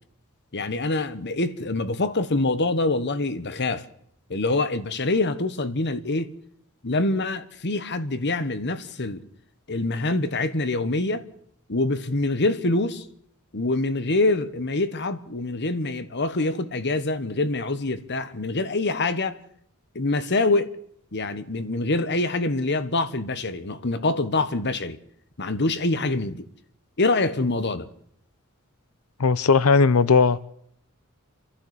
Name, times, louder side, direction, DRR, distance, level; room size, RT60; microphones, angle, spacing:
voice 1, 0.5-3.8 4.3-6.3 6.8-9.2 9.7-11.2 11.7-13.0 13.5-19.4 19.9-20.7 21.1-25.0 25.4-26.4 27.0-27.9, left 2 dB, 55° left, 1.4 m, -25 dB
voice 2, 29.2-30.4, left 4 dB, 80° left, 0.7 m, -18 dB
30.0 x 11.5 x 8.3 m
head